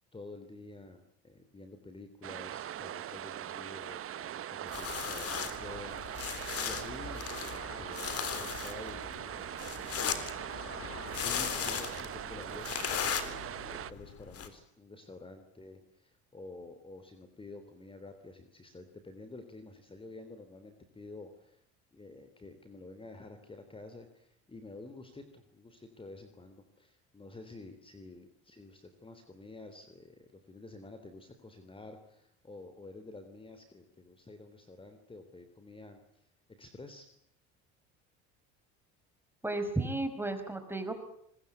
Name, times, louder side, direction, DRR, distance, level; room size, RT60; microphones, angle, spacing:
voice 1, 0.1-10.5 11.1-21.6 21.9-36.3 36.6-37.1, left 2 dB, 15° left, 8 dB, 3.4 m, -50 dB
sound 1, 2.2-13.9, right 11 dB, 45° right, 1.1 m, -41 dB
sound 2, 4.7-14.5, left 8 dB, 45° left, 3.8 m, -38 dB
voice 2, 39.4-41.0, right 2 dB, 5° right, 8 dB, 5.2 m, -33 dB
25.0 x 21.5 x 8.4 m, 0.71 s
supercardioid pair, 100°, 33 cm